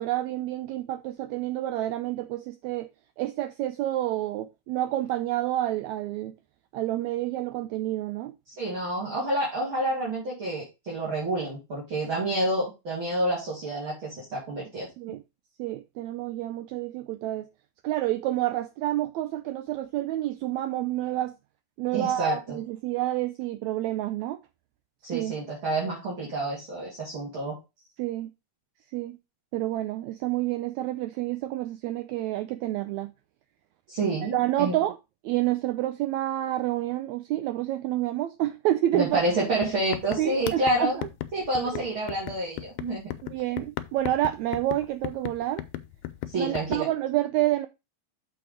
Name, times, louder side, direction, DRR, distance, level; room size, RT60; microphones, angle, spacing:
voice 1, 0.0-2.9 3.2-6.3 6.7-8.3 15.0-15.2 15.6-17.5 17.8-21.3 21.8-24.4 25.1-25.3 28.0-28.3 28.9-29.2 29.5-33.1 34.3-35.0 35.2-39.2 40.2-41.1 41.7-41.8 43.2-45.6 46.3-47.7, right 14 dB, 85° right, 1.6 m, -29 dB
voice 2, 8.5-14.9 21.9-22.6 25.0-27.6 33.9-34.7 38.9-41.0 41.3-43.1 46.3-46.9, right 1 dB, 40° right, 3.2 m, -28 dB
sound 1, 39.2-39.3 39.6-46.8, left 13 dB, 80° left, 2.2 m, -36 dB
7.0 x 4.8 x 4.9 m
omnidirectional pair, 3.7 m